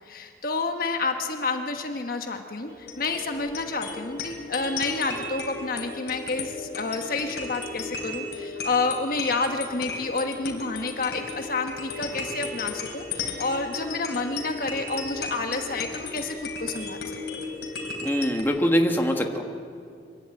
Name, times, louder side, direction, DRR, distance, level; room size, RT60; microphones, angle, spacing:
voice 1, 0.0-17.0, left 3 dB, 50° left, 5 dB, 1.3 m, -29 dB
sound 1, 2.7-18.4, left 3 dB, 75° left, 3.9 m, -35 dB
voice 2, 18.0-19.4, equal, 10° left, 3 dB, 1.4 m, -23 dB
25.5 x 11.5 x 8.9 m, 2.4 s
head